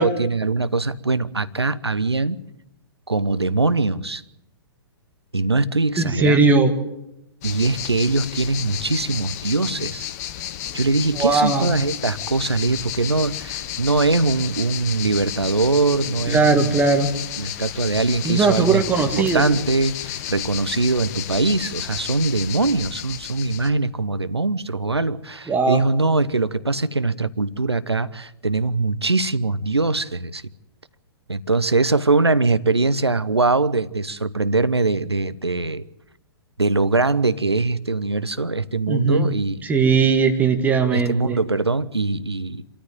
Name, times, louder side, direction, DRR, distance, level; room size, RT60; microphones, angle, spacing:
voice 1, 0.0-2.4 3.1-4.2 5.3-6.5 7.4-10.1 10.7-16.8 17.4-30.4 31.3-35.8 36.6-39.9 40.9-42.6, right 3 dB, 85° right, 14 dB, 0.9 m, -22 dB
voice 2, 6.0-6.7 11.2-11.7 16.3-17.1 18.2-19.5 25.5-25.8 38.9-39.3 39.6-41.4, right 4 dB, 10° right, 5 dB, 2.1 m, -19 dB
sound 1, 7.4-23.7, left 11 dB, 40° left, 1.3 m, -32 dB
26.5 x 13.5 x 9.2 m, 0.88 s
figure-of-eight pair, 115°, 13 cm